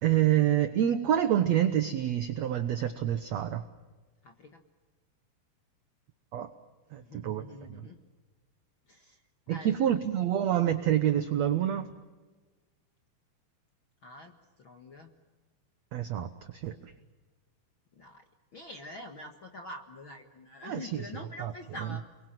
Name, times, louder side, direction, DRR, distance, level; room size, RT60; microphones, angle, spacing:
voice 1, 0.0-3.6 6.3-6.5 6.9-7.9 9.5-11.9 15.9-16.9 20.6-21.1 21.4-21.5, right 11 dB, 80° right, 10 dB, 1.5 m, -27 dB
voice 2, 4.2-4.6 7.0-8.0 8.9-9.2 9.5-10.0 14.0-14.3 14.6-15.1 17.9-18.2 18.5-22.0, left 2 dB, 50° left, 5 dB, 1.5 m, -45 dB
30.0 x 22.5 x 7.5 m, 1.3 s
omnidirectional pair, 4.6 m